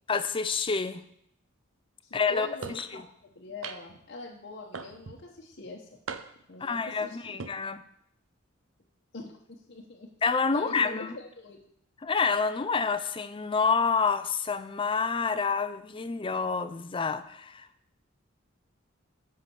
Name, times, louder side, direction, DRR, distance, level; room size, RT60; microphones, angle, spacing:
voice 1, 0.1-1.0 2.1-3.0 6.6-7.8 10.2-11.2 12.0-17.7, left 5 dB, 25° left, 12 dB, 0.5 m, -28 dB
voice 2, 2.0-2.8 3.2-5.9 6.5-7.4 9.1-9.3 9.7-10.1 10.5-11.6, left 2 dB, 50° left, -2 dB, 1.0 m, -43 dB
sound 1, 2.6-2.9 3.6-4.0 4.7-5.2 6.1-6.5 7.2-7.5, right 5 dB, 70° right, 0.6 m, -39 dB
8.1 x 5.7 x 7.0 m, 0.72 s
head